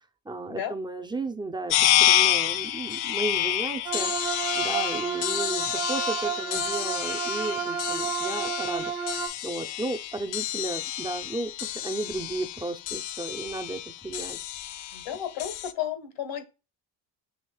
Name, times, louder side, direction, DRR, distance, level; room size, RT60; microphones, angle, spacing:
voice 1, 0.3-4.1 4.5-8.9 9.4-14.4, right 2 dB, 10° right, 0.6 m, -34 dB
sound 1, 1.7-15.7, left 13 dB, 55° left, 0.5 m, -29 dB
sound 2, 3.8-9.3, right 7 dB, 85° right, 0.9 m, -31 dB
voice 2, 14.9-16.4, left 10 dB, 70° left, 1.4 m, -33 dB
6.6 x 2.9 x 2.3 m
supercardioid pair, 85°, 49 cm